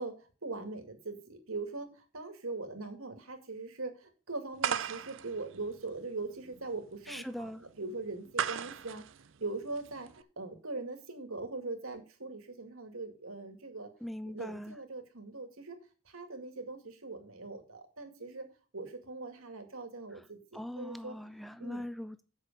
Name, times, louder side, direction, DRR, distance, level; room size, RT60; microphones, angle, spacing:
voice 1, 0.0-7.5 7.8-9.0 9.4-13.9 14.2-15.8 16.1-18.5 18.7-21.1 21.6-21.8, right 3 dB, 85° right, 2.2 m, -41 dB
sound 1, 4.6-10.2, right 8 dB, 65° right, 0.5 m, -38 dB
voice 2, 7.1-7.7 14.0-14.8 20.1-20.2 20.5-22.2, left 1 dB, ahead, 0.4 m, -41 dB
8.0 x 6.2 x 6.7 m
head